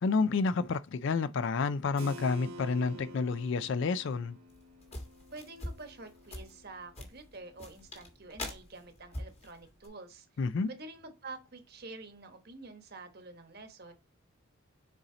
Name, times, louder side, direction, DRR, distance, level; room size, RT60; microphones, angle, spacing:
voice 1, 0.0-4.4 10.4-10.7, left 4 dB, 55° left, 0.4 m, -29 dB
Keyboard (musical), 2.0-7.5, equal, 75° right, 1.1 m, -50 dB
sound 1, 4.5-9.9, left 1 dB, 30° left, 1.5 m, -44 dB
voice 2, 5.3-10.3 10.7-13.9, right 3 dB, 45° right, 1.2 m, -48 dB
7.0 x 4.2 x 3.8 m
head